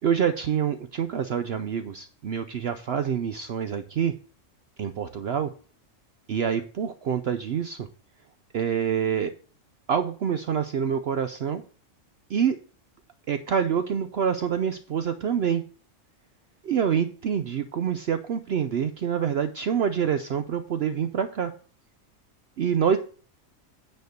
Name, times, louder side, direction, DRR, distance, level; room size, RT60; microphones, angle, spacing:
voice 1, 0.0-4.1 4.8-5.5 6.3-7.9 8.5-9.3 9.9-11.6 12.3-12.6 13.3-15.6 16.6-21.5 22.6-23.0, right 8 dB, 60° right, 10 dB, 0.7 m, -26 dB
9.4 x 4.4 x 6.5 m, 0.40 s
omnidirectional pair, 1.4 m